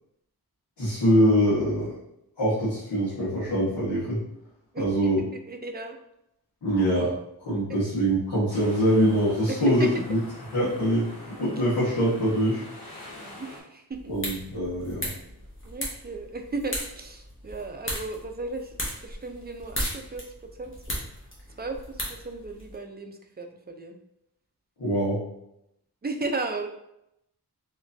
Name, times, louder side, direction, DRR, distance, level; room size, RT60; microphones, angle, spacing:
voice 1, 0.8-1.9 2.4-4.2 4.8-5.2 6.6-7.1 7.4-10.2 10.5-12.6 14.1-15.1 24.8-25.2, equal, 85° left, -12 dB, 1.4 m, -24 dB
voice 2, 4.7-6.0 9.5-10.0 13.1-14.2 15.6-18.8 19.0-21.0 21.6-24.0 26.0-26.7, right 2 dB, 25° right, 5 dB, 0.5 m, -35 dB
sound 1, 8.5-13.6, left 2 dB, 60° left, 1.1 m, -44 dB
sound 2, 13.9-22.8, equal, 30° left, 1.2 m, -37 dB
3.3 x 3.0 x 2.6 m, 0.82 s
cardioid pair, 50°, 40 cm